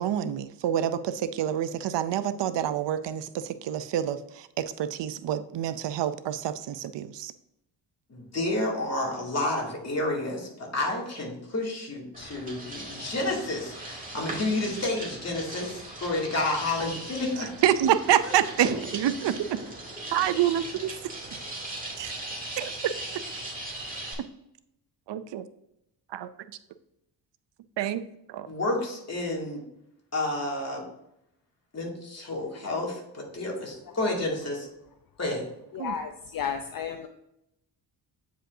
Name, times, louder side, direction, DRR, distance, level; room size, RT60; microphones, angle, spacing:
voice 1, 0.0-7.3 17.6-19.6 20.1-20.9 22.0-22.1 22.6-22.9 25.1-25.4 26.1-26.3 27.8-28.0 28.3-28.5 35.8-35.9, right 10 dB, 70° right, 12 dB, 0.6 m, -27 dB
voice 2, 8.1-17.5 28.5-29.6 30.1-30.8 31.7-34.7 35.2-35.5, left 2 dB, 35° left, -2 dB, 2.4 m, -30 dB
sound 1, 12.1-24.1, right 1 dB, 20° right, 2.1 m, -39 dB
voice 3, 35.7-37.1, left 7 dB, 50° left, 6 dB, 0.6 m, -33 dB
8.9 x 5.1 x 2.7 m, 0.81 s
cardioid pair, 90°, 45 cm